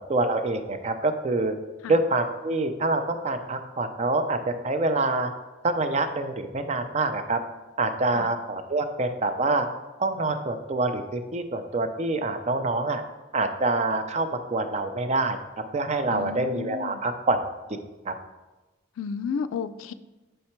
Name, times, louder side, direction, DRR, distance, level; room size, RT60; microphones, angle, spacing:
voice 1, 0.1-1.5 1.9-5.3 5.6-7.4 7.8-9.7 10.0-13.0 13.3-15.4 15.7-17.4 18.1-18.2, right 2 dB, 35° right, 8 dB, 0.5 m, -26 dB
voice 2, 16.1-17.0 19.0-19.9, left 6 dB, 85° left, 12 dB, 0.3 m, -32 dB
6.6 x 4.3 x 4.4 m, 1.1 s
head